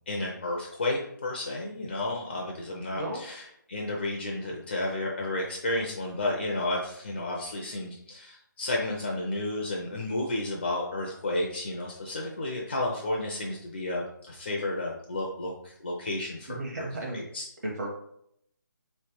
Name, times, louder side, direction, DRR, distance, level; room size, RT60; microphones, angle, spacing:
voice 1, 0.1-3.4 3.7-17.5, left 2 dB, 35° left, -1 dB, 0.6 m, -32 dB
voice 2, 16.5-17.2 17.6-17.9, right 1 dB, 55° right, -1 dB, 1.2 m, -34 dB
3.2 x 3.2 x 4.6 m, 0.72 s
hypercardioid pair, 175°, 11 cm